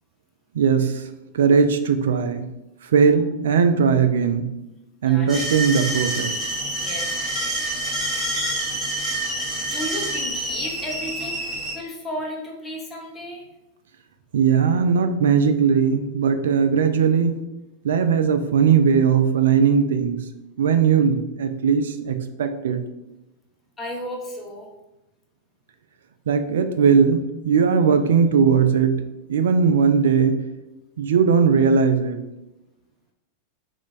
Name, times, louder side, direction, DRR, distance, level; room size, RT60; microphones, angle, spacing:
voice 1, 0.5-1.0 1.3-2.5 2.9-4.5 5.0-6.3 14.3-17.4 17.8-20.2 20.6-22.8 26.3-29.0 29.3-30.4 31.0-32.2, right 6 dB, 60° right, 8 dB, 0.3 m, -19 dB
voice 2, 5.0-5.5 6.7-7.1 9.6-11.5 11.7-13.4 23.8-24.7, left 1 dB, 15° left, -1 dB, 0.8 m, -33 dB
sound 1, 5.3-11.7, right 1 dB, 10° right, 1.2 m, -27 dB
3.0 x 2.4 x 4.1 m, 0.94 s
figure-of-eight pair, 90°, 0 cm